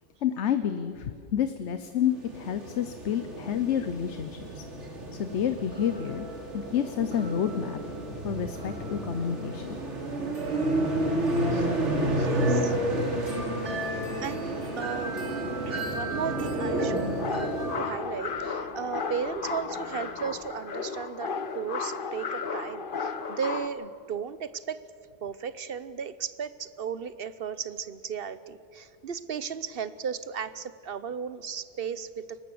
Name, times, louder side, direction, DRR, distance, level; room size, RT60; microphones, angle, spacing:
voice 1, 0.2-4.3 4.5-4.6 5.1-6.3 6.5-7.8 8.2-9.8, left 9 dB, 75° left, 10 dB, 1.1 m, -29 dB
sound 1, 2.1-17.8, right 1 dB, 80° right, 3.1 m, -30 dB
voice 2, 10.2-10.9 11.5-11.7 12.1-12.8 13.8-15.2 15.7-24.8 25.2-32.4, right 7 dB, 60° right, 15 dB, 0.9 m, -35 dB
sound 2, 11.9-20.4, left 1 dB, 35° right, 6.4 m, -47 dB
sound 3, 16.7-23.7, left 5 dB, 50° left, 1.1 m, -34 dB
23.0 x 19.0 x 7.8 m, 2.3 s
omnidirectional pair, 1.2 m